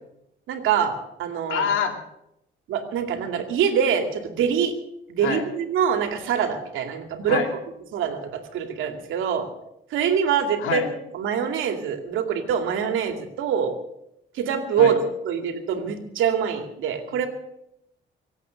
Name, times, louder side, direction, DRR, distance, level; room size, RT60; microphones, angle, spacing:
voice 1, 0.5-1.7 2.7-4.7 5.2-7.4 7.9-9.5 9.9-13.8 14.3-15.0 15.2-17.3, right 7 dB, 85° right, 5 dB, 2.4 m, -24 dB
voice 2, 1.5-2.0 5.2-5.5 7.2-7.5 10.6-10.9 14.8-14.9 17.1-17.2, left 7 dB, 85° left, 4 dB, 2.6 m, -26 dB
24.5 x 8.3 x 6.4 m, 0.81 s
cardioid pair, 90°, 20 cm